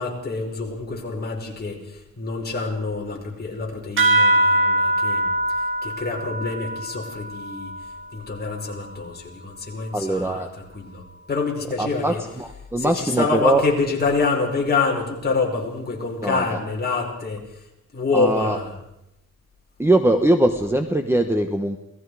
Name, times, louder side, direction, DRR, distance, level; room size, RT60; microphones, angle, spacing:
voice 1, 0.0-7.7 8.1-10.5 10.7-11.0 11.3-12.2 12.8-17.6 17.9-18.7, left 4 dB, 30° left, -1 dB, 5.2 m, -26 dB
sound 1, 4.0-8.9, right 1 dB, 40° right, 2.2 m, -23 dB
voice 2, 9.9-10.5 11.8-13.6 16.2-16.6 18.1-18.6 19.8-21.8, right 1 dB, 10° right, 6 dB, 1.1 m, -21 dB
28.5 x 19.0 x 4.9 m, 0.84 s
wide cardioid pair, 150°, 31 cm